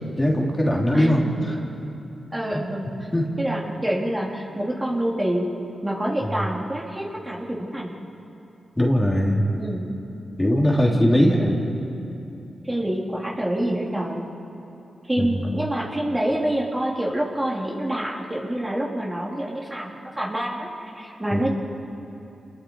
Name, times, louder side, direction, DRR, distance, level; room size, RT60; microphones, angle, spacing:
voice 1, 0.2-1.6 3.1-3.3 8.8-9.4 10.4-11.6 15.2-15.5 21.3-21.4, equal, 20° left, -2 dB, 3.8 m, -20 dB
voice 2, 0.9-1.5 2.3-3.1 3.4-5.5 5.8-7.9 9.6-9.9 10.8-11.1 12.6-14.2 15.1-20.7 20.9-21.5, right 1 dB, 20° right, -3 dB, 3.7 m, -27 dB
28.5 x 21.0 x 5.0 m, 2.9 s
supercardioid pair, 45°, 0 cm